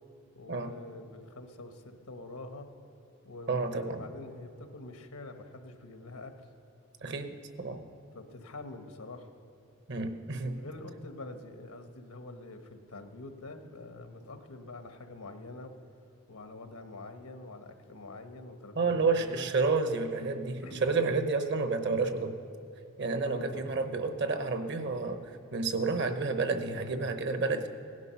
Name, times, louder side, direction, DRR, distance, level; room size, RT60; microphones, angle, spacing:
voice 1, 0.3-2.7 3.2-6.3 8.1-9.3 10.6-15.7 16.3-19.5 20.6-20.9 23.2-23.6 25.9-26.1, left 2 dB, 90° left, 6 dB, 1.2 m, -46 dB
voice 2, 3.5-4.0 7.0-7.8 9.9-10.6 18.8-22.3 23.0-25.2 25.5-27.7, right 4 dB, 50° right, 8 dB, 0.9 m, -30 dB
17.0 x 10.5 x 5.9 m, 2.6 s
head